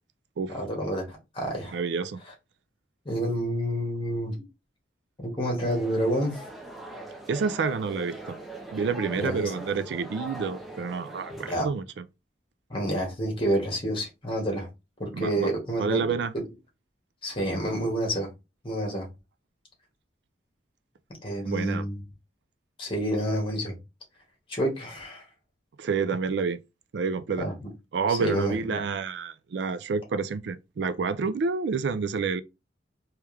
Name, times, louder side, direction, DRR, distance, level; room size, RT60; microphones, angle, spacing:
voice 1, 0.5-1.7 3.0-4.3 5.4-6.4 9.2-9.5 11.4-11.6 12.7-14.7 15.0-16.0 17.2-18.3 18.6-19.1 21.2-22.0 22.8-23.7 24.5-25.2 27.4-27.7 28.1-28.8, right 1 dB, 30° left, 1.6 m, -28 dB
voice 2, 1.7-2.2 7.3-8.4 8.7-11.8 15.1-15.5 15.8-16.3 21.5-21.8 25.8-26.6 26.9-27.5 27.9-32.4, right 5 dB, 65° right, 0.4 m, -28 dB
sound 1, 5.6-11.6, right 1 dB, ahead, 0.6 m, -41 dB
3.4 x 3.0 x 3.3 m
head